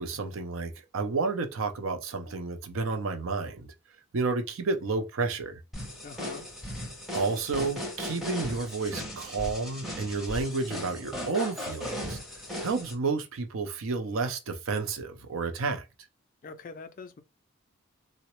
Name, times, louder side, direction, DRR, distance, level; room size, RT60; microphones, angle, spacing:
voice 1, 0.0-3.7 4.1-5.6 7.1-12.2 12.6-15.9, right 4 dB, 70° right, 0.5 m, -31 dB
sound 1, 5.7-12.9, left 1 dB, ahead, 0.6 m, -37 dB
voice 2, 6.0-6.4 16.4-17.2, left 4 dB, 40° left, 0.3 m, -43 dB
3.8 x 2.1 x 2.9 m
head